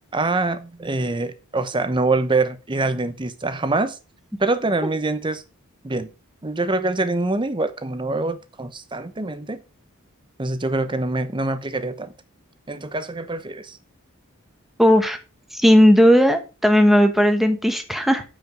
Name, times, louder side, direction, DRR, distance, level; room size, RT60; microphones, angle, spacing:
voice 1, 0.1-4.0 4.4-5.4 5.8-6.1 6.4-9.6 10.4-12.1 12.7-13.8, right 2 dB, 20° right, 0.8 m, -24 dB
voice 2, 14.8-15.2 15.5-18.2, equal, ahead, 1.2 m, -16 dB
9.4 x 5.2 x 5.1 m
head